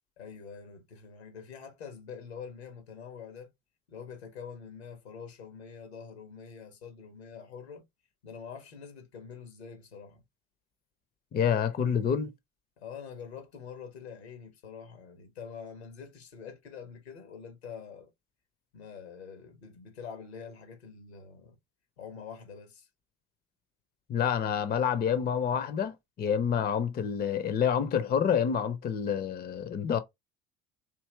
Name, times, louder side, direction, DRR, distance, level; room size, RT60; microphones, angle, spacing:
voice 1, 0.2-3.5 3.9-7.8 8.2-10.2 12.8-18.1 18.7-21.6 22.0-22.9, left 6 dB, 75° left, 1.3 m, -45 dB
voice 2, 11.3-12.3 24.1-30.0, left 8 dB, 30° left, 0.7 m, -28 dB
4.5 x 2.9 x 3.2 m
figure-of-eight pair, 65°, 32 cm